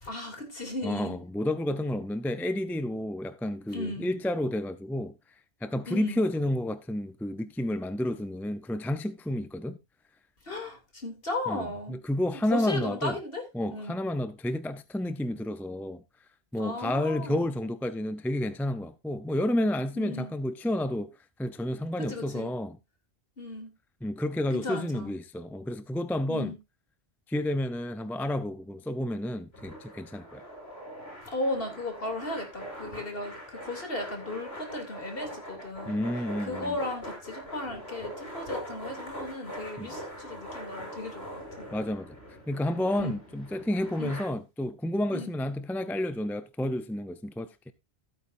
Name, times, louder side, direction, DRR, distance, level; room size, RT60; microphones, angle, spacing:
voice 1, 0.0-1.2 3.7-4.1 5.9-6.3 10.4-12.0 12.5-13.4 13.7-13.9 16.6-17.5 19.9-20.3 22.0-22.5 23.4-23.7 24.5-25.1 26.3-26.6 31.2-36.0 36.4-41.7 43.0-43.1 44.0-44.1 45.1-45.3, left 2 dB, 60° left, 3.3 m, -36 dB
voice 2, 0.8-5.1 5.6-9.8 11.5-13.2 13.5-16.0 16.5-21.1 21.4-22.8 24.0-26.5 27.3-30.4 35.9-36.8 39.8-39.9 41.7-42.2 42.5-47.5, left 1 dB, ahead, 0.5 m, -30 dB
sound 1, 29.5-44.2, equal, 85° left, 7.3 m, -42 dB
15.5 x 8.9 x 2.6 m
omnidirectional pair, 1.1 m